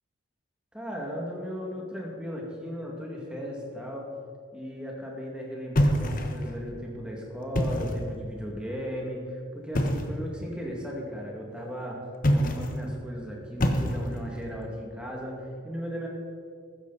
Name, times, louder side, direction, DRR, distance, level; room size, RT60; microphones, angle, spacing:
voice 1, 0.7-4.1 4.5-12.0 12.3-16.1, equal, 5° right, -2 dB, 2.2 m, -36 dB
sound 1, 5.7-6.6 7.4-8.1 9.7-10.2 12.2-12.8 13.6-14.3, equal, 40° left, 1.1 m, -26 dB
15.0 x 13.0 x 4.2 m, 2.3 s
head